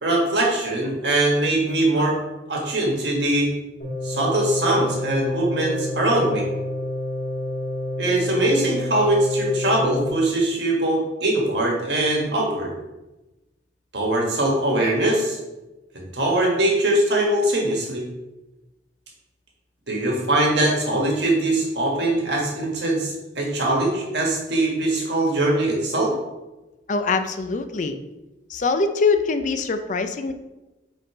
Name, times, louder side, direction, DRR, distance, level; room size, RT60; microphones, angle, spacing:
voice 1, 0.0-2.1 2.5-3.5 4.0-6.4 8.0-12.7 13.9-15.4 15.9-18.0 19.9-26.1, right 1 dB, 75° right, -1 dB, 1.6 m, -22 dB
sound 1, 3.8-10.1, left 1 dB, 80° left, 1.9 m, -29 dB
voice 2, 26.9-28.0 28.5-30.3, left 4 dB, 45° left, 9 dB, 0.4 m, -23 dB
5.3 x 3.7 x 4.9 m, 1.0 s
head